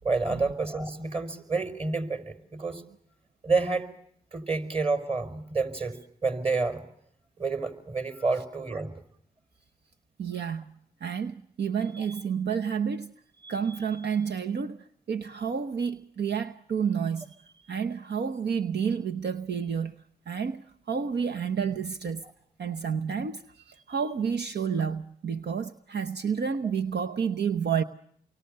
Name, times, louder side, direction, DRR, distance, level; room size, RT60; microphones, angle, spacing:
voice 1, 0.0-2.8 3.4-3.9 4.3-6.8 7.4-8.9, right 3 dB, 35° right, 5.0 m, -29 dB
voice 2, 10.2-10.7 11.0-20.6 20.9-22.2 22.6-27.8, right 6 dB, 75° right, 0.9 m, -30 dB
29.5 x 24.0 x 6.6 m
cardioid pair, 40°, 17 cm